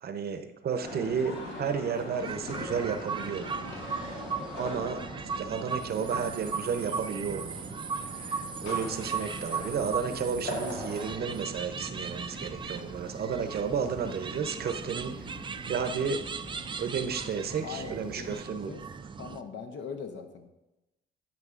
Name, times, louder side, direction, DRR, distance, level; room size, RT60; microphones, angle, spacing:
voice 1, 0.0-3.4 4.6-5.0 5.4-7.6 8.6-15.3 15.6-16.2 16.8-18.7, right 6 dB, 50° right, 8 dB, 0.7 m, -32 dB
sound 1, 0.8-11.1, left 2 dB, 90° left, 1.4 m, -41 dB
sound 2, 2.2-19.4, right 5 dB, 25° right, 0.4 m, -37 dB
sound 3, 8.6-18.3, left 4 dB, 40° left, 0.8 m, -50 dB
voice 2, 17.6-18.8 19.2-20.5, left 6 dB, 70° left, 6 dB, 0.8 m, -41 dB
11.0 x 5.3 x 2.5 m, 0.97 s
cardioid pair, 90°, 20 cm